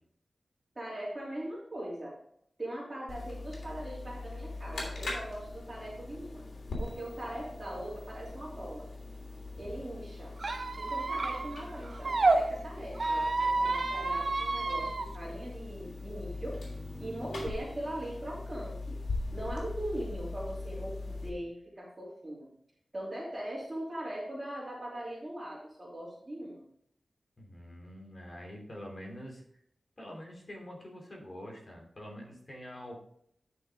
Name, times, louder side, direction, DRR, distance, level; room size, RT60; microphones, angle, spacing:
voice 1, 0.7-2.1 2.6-6.4 6.8-8.9 9.6-10.3 10.7-16.5 17.0-18.9 19.3-22.5 22.9-26.6, right 1 dB, 30° right, -8 dB, 2.9 m, -40 dB
sound 1, 3.1-21.3, left 2 dB, 85° left, 3.0 m, -41 dB
Squeak, 10.4-12.4 12.9-15.0, right 3 dB, 55° right, 1.0 m, -29 dB
voice 2, 27.4-29.4 30.0-33.0, equal, 40° left, -1 dB, 3.0 m, -45 dB
10.5 x 6.2 x 3.7 m, 0.70 s
wide cardioid pair, 85°, 0 cm